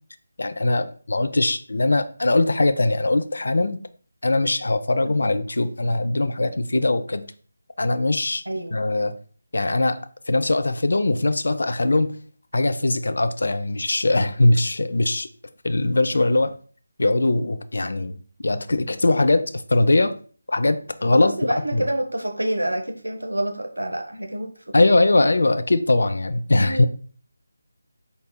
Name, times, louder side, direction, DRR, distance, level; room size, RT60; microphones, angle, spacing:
voice 1, 0.4-3.8 4.2-7.2 7.8-8.4 8.7-9.1 9.5-10.0 10.3-12.2 12.5-15.3 15.6-16.6 17.0-18.2 18.4-20.1 20.5-21.3 21.7-21.9 24.7-26.9, left 2 dB, 65° left, 11 dB, 0.4 m, -21 dB
voice 2, 8.5-8.8 21.1-25.0 26.5-26.9, right 1 dB, 85° right, 4 dB, 0.9 m, -28 dB
5.4 x 4.1 x 2.2 m, 0.43 s
figure-of-eight pair, 160°, 0 cm